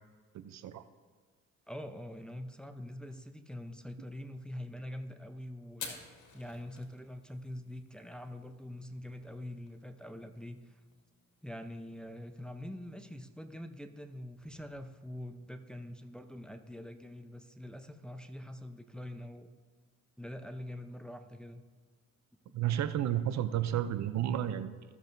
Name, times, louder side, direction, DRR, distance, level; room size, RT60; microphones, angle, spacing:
voice 1, 0.3-0.8 22.5-24.8, right 11 dB, 65° right, 12 dB, 0.6 m, -32 dB
voice 2, 1.7-10.8 11.4-19.5 20.2-21.6 22.5-22.6, left 1 dB, 5° left, 6 dB, 0.7 m, -44 dB
Fire, 5.7-14.9, left 6 dB, 75° left, 2.1 m, -53 dB
15.0 x 7.1 x 2.7 m, 1.5 s
cardioid pair, 90°, 30 cm